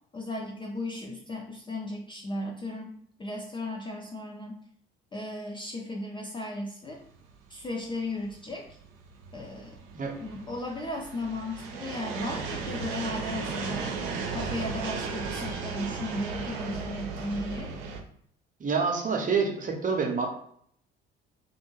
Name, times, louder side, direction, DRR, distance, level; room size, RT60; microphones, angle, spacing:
voice 1, 0.1-2.9 3.2-4.6 5.1-7.0 7.5-8.7 9.3-9.8 10.2-14.0 14.3-17.7, left 1 dB, 15° left, 0 dB, 0.4 m, -35 dB
sound 1, 7.1-18.0, right 5 dB, 65° right, 0.5 m, -36 dB
voice 2, 18.6-20.3, right 5 dB, 25° right, 2 dB, 0.6 m, -27 dB
2.5 x 2.3 x 2.9 m, 0.65 s
figure-of-eight pair, 50°, 30 cm